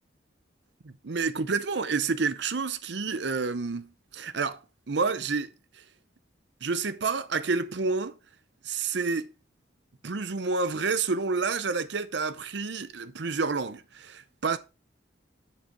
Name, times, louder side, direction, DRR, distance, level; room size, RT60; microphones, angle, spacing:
voice 1, 0.8-4.6 4.9-5.5 6.6-8.2 8.6-9.3 10.0-14.6, right 4 dB, 65° right, 0.7 m, -29 dB
10.5 x 4.9 x 4.6 m
head